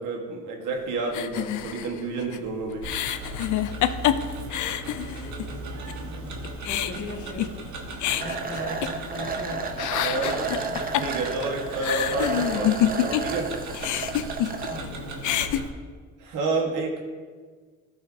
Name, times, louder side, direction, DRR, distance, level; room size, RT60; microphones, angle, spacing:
voice 1, 0.0-2.8 10.0-10.5 11.0-13.5 16.2-17.0, right 3 dB, 90° right, 1 dB, 1.4 m, -29 dB
sound 1, 1.1-5.5 5.9-6.0 6.3-9.4 9.7-13.4 13.7-14.9 15.1-15.6, left 11 dB, 75° left, 0.5 m, -27 dB
Tick-tock, 2.8-15.7, right 2 dB, 70° right, 1.3 m, -38 dB
voice 2, 5.1-6.3 6.7-7.5 8.1-9.6 10.0-10.8 14.7-15.3, left 2 dB, 35° left, 0 dB, 1.8 m, -39 dB
sound 2, 8.1-14.8, right 4 dB, 30° right, 0.8 m, -32 dB
13.5 x 5.7 x 2.7 m, 1.5 s
cardioid pair, 90°, 30 cm